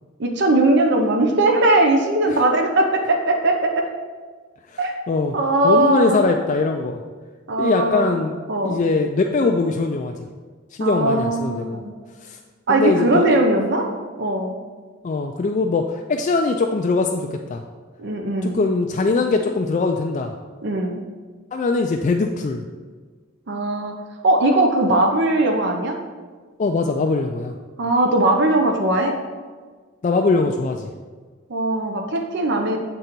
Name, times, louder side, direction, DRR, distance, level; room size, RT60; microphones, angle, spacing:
voice 1, 0.2-3.8 4.8-4.9 5.3-6.3 7.5-8.2 8.5-8.8 10.8-11.9 12.7-13.9 14.2-14.6 18.0-18.6 20.6-21.0 23.5-24.0 24.2-26.0 27.8-29.2 31.5-32.8, right 2 dB, 55° right, 3 dB, 0.6 m, -19 dB
voice 2, 5.6-7.0 7.6-8.3 8.6-10.1 10.7-11.8 12.2-12.4 12.7-13.4 15.0-17.6 18.4-20.3 21.5-22.6 26.6-27.5 30.0-30.9, left 3 dB, 35° left, 3 dB, 0.3 m, -21 dB
8.0 x 3.8 x 4.4 m, 1.5 s
head